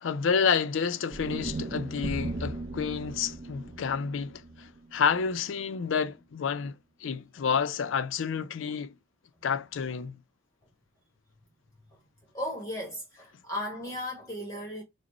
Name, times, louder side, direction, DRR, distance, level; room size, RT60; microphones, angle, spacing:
voice 1, 0.0-8.9 9.4-10.2, left 6 dB, 65° left, 0.4 m, -29 dB
sound 1, 1.1-5.3, right 2 dB, 35° right, 0.4 m, -37 dB
voice 2, 12.3-14.8, left 1 dB, 15° left, 0.9 m, -36 dB
4.9 x 2.0 x 4.2 m
head